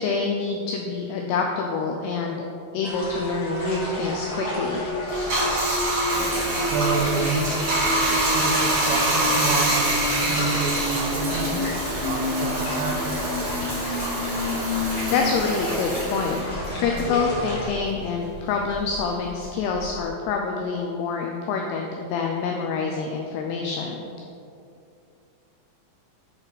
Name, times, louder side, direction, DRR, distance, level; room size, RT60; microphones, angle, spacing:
voice 1, 0.0-2.5 2.7-4.9 15.1-16.4 16.8-24.1, left 5 dB, 85° left, 1 dB, 2.3 m, -26 dB
sound 1, 2.8-17.7, left 1 dB, 65° left, 1.2 m, -34 dB
sound 2, 2.8-15.3 15.6-15.7 16.1-18.8, left 1 dB, 60° right, 3.1 m, -31 dB
Bathtub (filling or washing), 5.1-17.9 18.2-20.1, right 1 dB, 45° right, 2.1 m, -26 dB
voice 2, 6.6-11.6 11.9-13.3, right 4 dB, 85° right, 3 dB, 3.0 m, -30 dB
8.6 x 5.4 x 4.0 m, 2.6 s
omnidirectional pair, 5.3 m